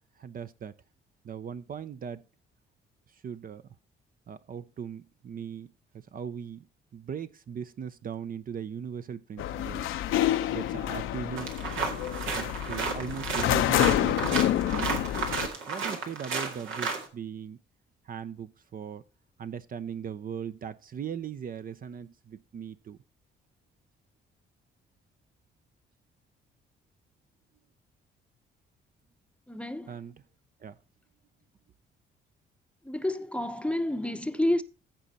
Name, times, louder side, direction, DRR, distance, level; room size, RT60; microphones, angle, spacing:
voice 1, 0.2-0.7 1.2-2.2 3.2-3.6 4.3-5.7 5.9-6.7 6.9-9.8 10.5-11.5 12.3-14.4 14.7-15.0 15.7-17.6 18.1-19.0 19.4-23.0 29.9-30.2 30.6-30.8, right 7 dB, 45° right, 0.6 m, -39 dB
sound 1, 9.4-15.5, left 12 dB, 85° left, 0.7 m, -28 dB
sound 2, 11.4-17.1, right 5 dB, 85° right, 2.1 m, -33 dB
voice 2, 29.5-29.9 32.8-34.6, left 1 dB, 5° left, 0.7 m, -29 dB
14.5 x 5.1 x 4.2 m
cardioid pair, 90°, 20 cm